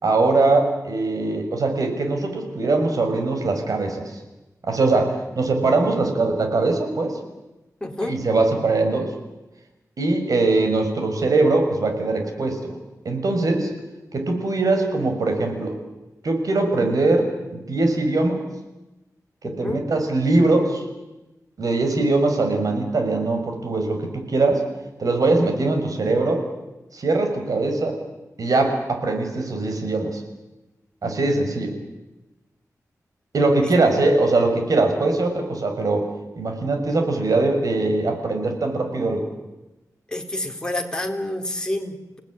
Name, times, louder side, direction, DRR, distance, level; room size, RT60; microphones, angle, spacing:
voice 1, 0.0-4.2 4.6-7.2 8.0-9.1 10.0-12.8 13.0-13.7 14.1-15.8 16.2-17.3 17.7-18.4 19.4-20.8 21.6-24.6 25.0-26.5 26.9-28.0 28.4-30.2 31.0-31.7 33.3-36.1 36.4-39.3, right 2 dB, 70° right, 4 dB, 6.1 m, -21 dB
voice 2, 7.8-8.2 19.4-19.8 33.6-33.7 40.1-42.2, left 1 dB, 10° left, 3 dB, 3.9 m, -28 dB
29.5 x 18.5 x 9.9 m, 1.0 s
wide cardioid pair, 95°, 6 cm